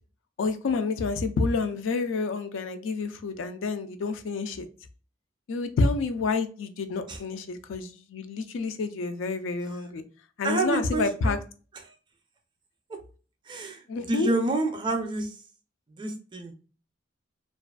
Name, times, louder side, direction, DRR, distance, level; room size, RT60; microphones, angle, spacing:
voice 1, 0.4-4.7 5.5-10.0 10.4-11.4 13.9-14.3, left 3 dB, 80° left, 9 dB, 0.4 m, -28 dB
voice 2, 10.4-11.4 11.8-11.9 12.9-13.0 13.5-15.4 15.9-16.5, right 2 dB, 25° right, 3 dB, 0.4 m, -29 dB
2.4 x 2.3 x 2.2 m, 0.38 s
head